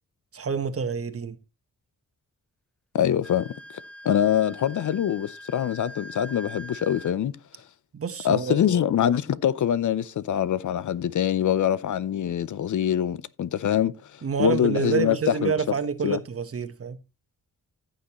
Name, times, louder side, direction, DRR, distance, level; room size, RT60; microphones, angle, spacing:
voice 1, 0.3-1.4 7.9-8.8 14.2-17.0, right 6 dB, 45° right, 1.2 m, -28 dB
voice 2, 2.9-3.5 4.0-7.4 8.2-15.7 16.0-16.2, left 10 dB, 65° left, 0.6 m, -24 dB
Wind instrument woodwind instrument, 3.2-7.2, equal, 5° left, 0.7 m, -43 dB
15.0 x 6.5 x 3.0 m
wide cardioid pair, 100°, 32 cm